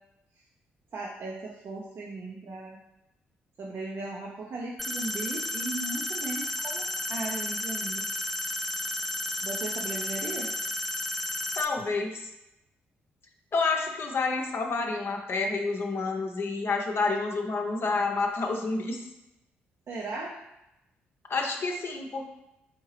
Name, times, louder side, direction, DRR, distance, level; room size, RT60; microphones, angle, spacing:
voice 1, 0.9-2.8 3.6-8.1 9.4-10.5 19.9-20.4, right 3 dB, 55° right, -2 dB, 0.7 m, -37 dB
sound 1, 4.8-11.6, left 1 dB, 5° left, 0.6 m, -32 dB
voice 2, 11.6-12.3 13.5-19.1 21.3-22.2, left 3 dB, 50° left, 2 dB, 0.7 m, -29 dB
4.3 x 3.6 x 3.2 m, 0.90 s
hypercardioid pair, 45°, 5 cm